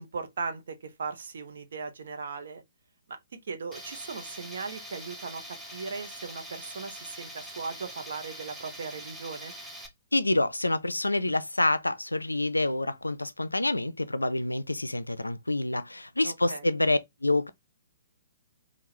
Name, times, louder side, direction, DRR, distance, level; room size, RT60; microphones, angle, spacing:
voice 1, 0.0-2.6 3.4-5.4 5.7-9.5 16.2-16.7, right 4 dB, 60° right, 0.8 m, -38 dB
Tools, 3.7-9.9, equal, ahead, 0.9 m, -44 dB
voice 2, 10.1-17.5, left 2 dB, 85° left, 0.4 m, -27 dB
3.6 x 2.3 x 2.9 m
figure-of-eight pair, 125°, 0 cm